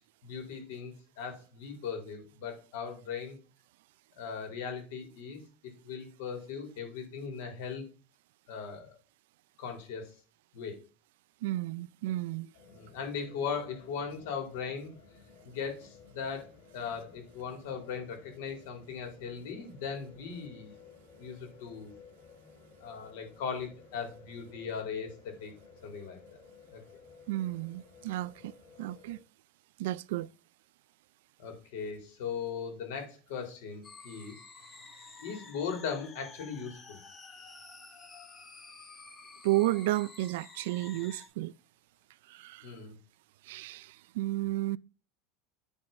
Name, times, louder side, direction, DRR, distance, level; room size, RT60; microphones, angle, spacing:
voice 1, 0.2-3.4 4.2-7.8 8.5-9.0 9.6-10.1 10.5-10.8 12.7-14.9 15.4-20.8 21.2-21.9 22.8-25.5 25.8-26.4 26.7-26.8 31.4-34.3 35.2-37.0 42.6-43.0, left 6 dB, 70° left, 3.2 m, -39 dB
voice 2, 11.4-12.5 27.3-28.5 28.8-29.2 29.8-30.3 39.4-41.5 42.3-42.7 43.5-44.8, right 17 dB, 75° right, 0.3 m, -32 dB
sound 1, 12.5-29.2, left 5 dB, 55° left, 4.2 m, -56 dB
sound 2, 33.8-41.3, left 4 dB, 15° left, 1.1 m, -51 dB
9.0 x 3.5 x 5.2 m
supercardioid pair, 155°, 0 cm